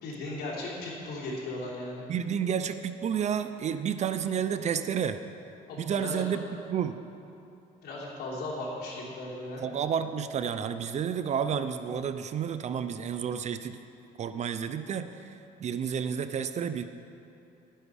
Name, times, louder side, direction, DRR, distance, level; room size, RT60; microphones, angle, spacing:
voice 1, 0.0-2.0 5.7-6.2 7.8-9.6, left 2 dB, 70° left, -5 dB, 3.1 m, -37 dB
voice 2, 2.1-5.2 5.8-6.4 6.7-7.0 9.6-13.8 14.2-16.8, right 8 dB, 40° right, 10 dB, 0.5 m, -30 dB
11.5 x 10.0 x 4.9 m, 2.7 s
cardioid pair, 110°, 17 cm